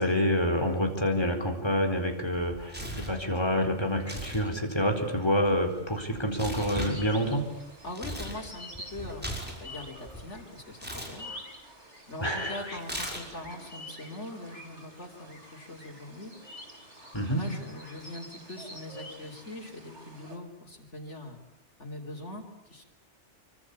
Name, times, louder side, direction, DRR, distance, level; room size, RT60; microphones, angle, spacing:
voice 1, 0.0-7.4 12.2-12.8 17.1-17.4, equal, 20° left, 3 dB, 4.5 m, -27 dB
Tearing, 2.3-3.2 4.0-4.4 4.7-8.4 8.7-10.2 10.8-11.1 12.8-13.5, equal, 10° right, 6.1 m, -38 dB
sound 1, 6.4-20.4, left 1 dB, 75° right, 4.9 m, -47 dB
voice 2, 7.8-11.3 12.1-16.3 17.3-21.4 21.8-22.8, left 2 dB, 85° left, 0 dB, 4.1 m, -42 dB
26.5 x 24.5 x 8.6 m, 0.83 s
omnidirectional pair, 1.2 m